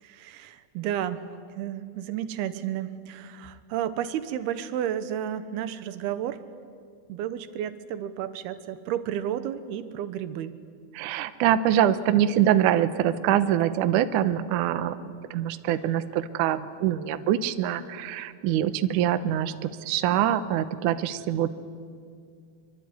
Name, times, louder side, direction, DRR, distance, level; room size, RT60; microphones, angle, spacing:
voice 1, 0.0-1.2 1.6-6.4 7.1-10.5, right 10 dB, 85° right, 12 dB, 3.1 m, -32 dB
voice 2, 10.9-21.5, right 11 dB, 70° right, 11 dB, 2.1 m, -24 dB
25.5 x 24.5 x 9.5 m, 2.2 s
omnidirectional pair, 4.4 m